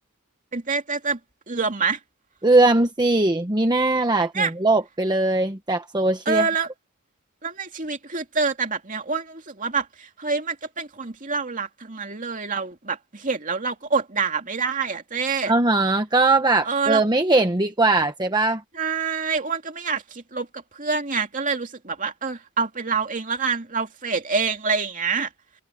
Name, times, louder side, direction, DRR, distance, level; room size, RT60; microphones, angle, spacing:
voice 1, 0.5-1.2 1.5-2.0 4.3-4.5 6.3-6.7 7.4-15.5 16.6-17.0 18.7-25.3, right 5 dB, 35° right, 2.6 m, -26 dB
voice 2, 2.4-6.5 15.5-18.6, right 2 dB, 20° right, 1.0 m, -20 dB
head